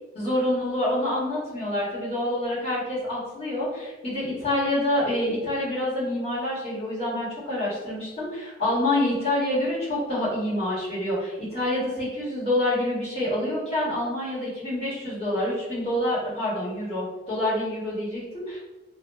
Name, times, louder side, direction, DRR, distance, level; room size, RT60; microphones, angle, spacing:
voice 1, 0.1-18.6, left 1 dB, 35° left, -10 dB, 1.3 m, -27 dB
2.4 x 2.1 x 3.3 m, 1.2 s
head